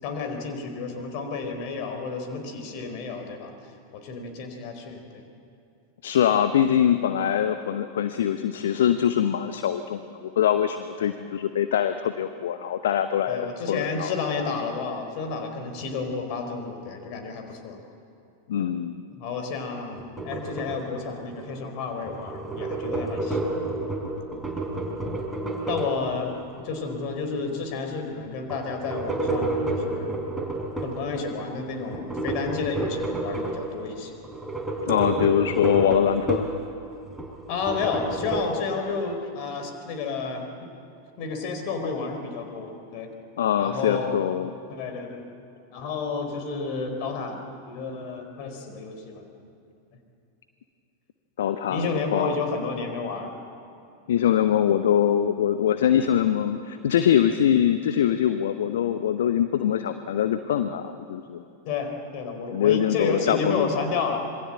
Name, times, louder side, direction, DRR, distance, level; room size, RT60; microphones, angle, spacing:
voice 1, 0.0-3.5 3.9-5.2 11.0-11.1 13.3-17.8 19.2-23.4 25.7-26.4 26.6-30.2 30.8-34.1 37.5-40.5 41.2-43.1 43.6-44.1 44.7-45.3 45.7-49.3 51.7-53.4 61.6-64.3, left 4 dB, 45° left, 5 dB, 4.3 m, -31 dB
voice 2, 6.0-14.1 18.5-19.0 34.9-36.5 43.4-44.5 51.4-52.4 54.1-61.4 62.5-63.7, left 9 dB, 60° left, 10 dB, 0.9 m, -23 dB
sound 1, 19.9-21.6 21.9-26.6 28.5-31.0 31.9-33.9 34.2-36.6 37.0-38.4, right 2 dB, 5° right, 4.2 m, -30 dB
26.5 x 22.5 x 7.8 m, 2.6 s
figure-of-eight pair, 90°, 0 cm